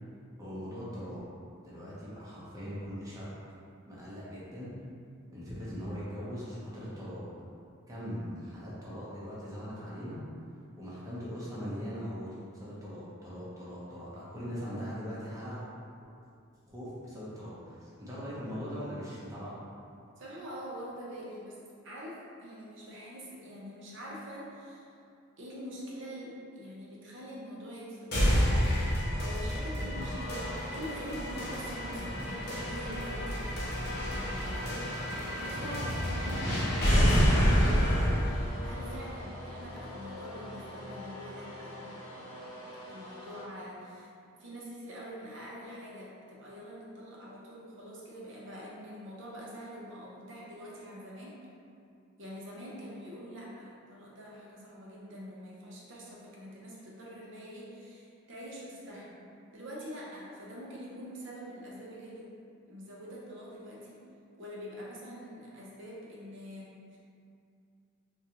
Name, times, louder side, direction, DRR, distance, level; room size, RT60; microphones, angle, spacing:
voice 1, 0.4-1.2 1.6-3.3 3.9-4.7 5.3-7.2 7.9-10.2 10.8-15.7 16.7-19.5 36.2-36.8, equal, 15° right, -9 dB, 0.7 m, -40 dB
voice 2, 20.2-21.6 21.8-25.0 25.4-28.5 28.8-33.4 35.3-41.8 42.9-44.1 44.4-51.4 52.2-59.2 59.5-62.3 62.7-64.0 64.4-67.0, equal, 55° right, -5 dB, 0.7 m, -44 dB
sound 1, 28.1-40.1, equal, 45° left, 0.7 m, -29 dB
sound 2, 29.9-43.4, left 1 dB, 75° left, 0.8 m, -44 dB
3.7 x 2.3 x 2.8 m, 2.4 s
head